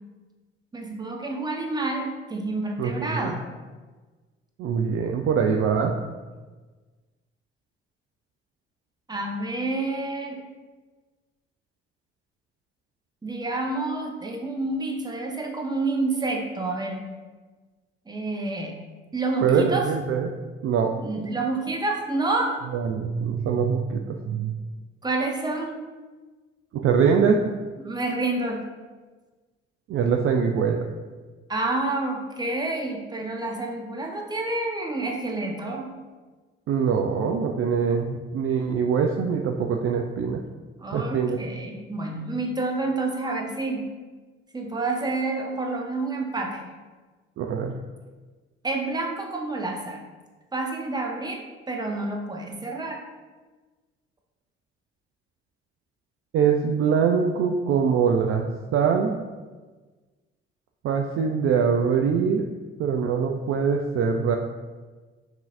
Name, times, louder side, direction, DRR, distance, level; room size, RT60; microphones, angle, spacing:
voice 1, 0.7-3.4 9.1-10.4 13.2-17.0 18.1-18.8 19.1-19.9 21.0-22.5 25.0-25.8 27.8-28.6 31.5-35.9 40.8-43.8 44.5-46.7 48.6-50.0 50.5-51.4 51.7-53.0, right 2 dB, 15° right, 1 dB, 0.8 m, -28 dB
voice 2, 2.8-3.3 4.6-6.0 19.4-20.3 20.6-20.9 22.7-24.5 26.7-27.4 29.9-30.9 36.7-40.4 40.9-41.4 47.4-47.8 56.3-59.2 60.8-62.4 62.8-64.4, right 6 dB, 45° right, 3 dB, 0.4 m, -23 dB
5.5 x 2.7 x 2.4 m, 1.3 s
hypercardioid pair, 45°, 32 cm